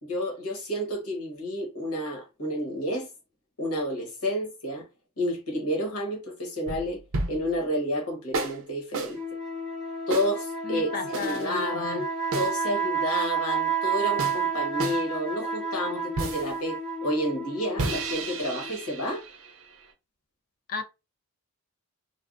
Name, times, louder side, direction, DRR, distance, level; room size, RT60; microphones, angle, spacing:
voice 1, 0.0-3.1 3.6-4.9 5.2-7.0 7.3-9.2 10.1-12.1 12.3-19.2, equal, 80° left, 1.2 m, -30 dB
sound 1, 6.7-7.6 8.3-8.6 8.9-9.1 10.1-10.3 11.1-11.5 12.3-12.5 14.2-14.4 14.8-15.0 16.2-16.5 17.8-19.9, right 3 dB, 65° right, 0.5 m, -32 dB
sound 2, 9.1-18.8, right 5 dB, ahead, 0.8 m, -31 dB
voice 2, 10.7-12.0 20.7-20.8, left 6 dB, 40° left, 0.3 m, -34 dB
3.4 x 2.2 x 2.4 m
head